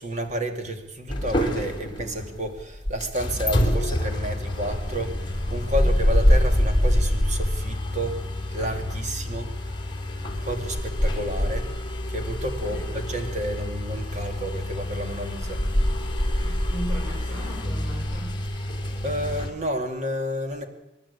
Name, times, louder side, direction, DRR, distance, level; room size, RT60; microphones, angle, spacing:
voice 1, 0.0-8.3 8.5-9.8 10.2-11.7 12.1-15.6 19.0-20.7, right 1 dB, 40° right, 6 dB, 2.7 m, -31 dB
sound 1, 1.1-19.5, left 1 dB, 25° left, 3.3 m, -26 dB
voice 2, 12.6-12.9 16.4-18.4, right 1 dB, 5° right, -4 dB, 5.4 m, -37 dB
27.0 x 12.0 x 8.7 m, 0.98 s
head